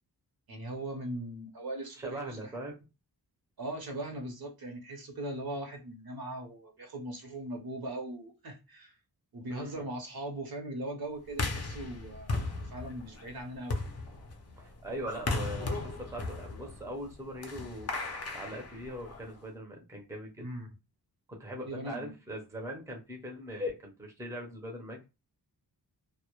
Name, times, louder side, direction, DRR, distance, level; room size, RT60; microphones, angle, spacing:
voice 1, 0.5-2.5 3.6-8.9 9.3-12.4 12.7-13.8 20.4-20.7 21.5-22.1, right 1 dB, 60° right, 0.7 m, -39 dB
voice 2, 2.0-2.7 9.5-9.8 14.6-17.9 18.3-20.4 21.3-25.0, equal, 5° right, 0.5 m, -40 dB
sound 1, 11.3-19.4, left 3 dB, 40° left, 0.5 m, -37 dB
2.0 x 2.0 x 2.9 m
wide cardioid pair, 130°, 41 cm